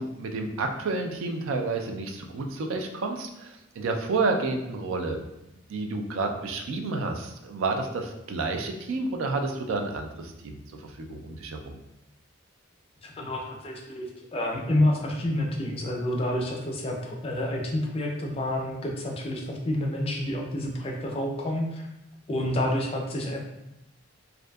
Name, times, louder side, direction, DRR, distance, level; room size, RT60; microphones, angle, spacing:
voice 1, 0.0-5.2 5.7-11.8, right 3 dB, 75° right, 4 dB, 0.3 m, -30 dB
voice 2, 13.0-21.9 22.3-23.4, left 1 dB, 30° left, 0 dB, 0.3 m, -29 dB
2.6 x 2.3 x 2.2 m, 0.88 s
head